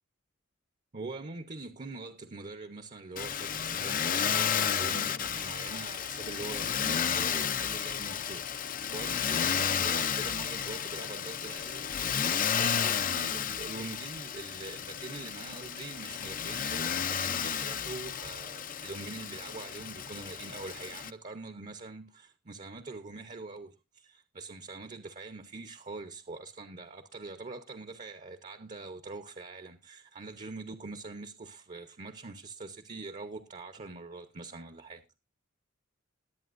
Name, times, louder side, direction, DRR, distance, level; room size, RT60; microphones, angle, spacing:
voice 1, 0.9-35.0, right 3 dB, 35° right, 0.8 m, -44 dB
Motor vehicle (road), 3.2-21.1, left 8 dB, 40° left, 0.6 m, -32 dB
20.5 x 8.6 x 2.5 m
head